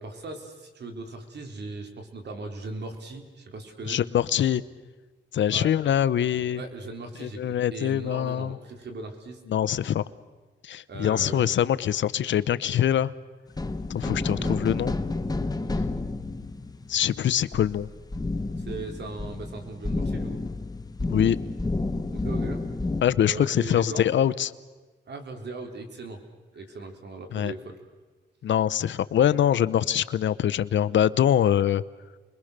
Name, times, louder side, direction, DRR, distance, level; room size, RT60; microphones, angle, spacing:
voice 1, 0.0-4.0 5.5-5.7 6.5-9.4 10.9-11.5 14.0-14.6 18.6-20.4 22.1-22.6 23.2-24.1 25.1-26.2 26.5-27.8, right 3 dB, 65° right, 5 dB, 3.9 m, -38 dB
voice 2, 3.9-4.6 5.3-6.6 7.2-8.6 9.5-10.0 10.6-13.1 13.9-14.9 16.9-17.9 21.1-21.4 23.0-24.5 27.3-27.5 28.4-31.8, left 10 dB, 75° left, 16 dB, 0.8 m, -24 dB
sound 1, 13.5-23.0, left 2 dB, 20° left, 1.4 m, -30 dB
29.5 x 22.5 x 6.7 m, 1.3 s
cardioid pair, 90°, 19 cm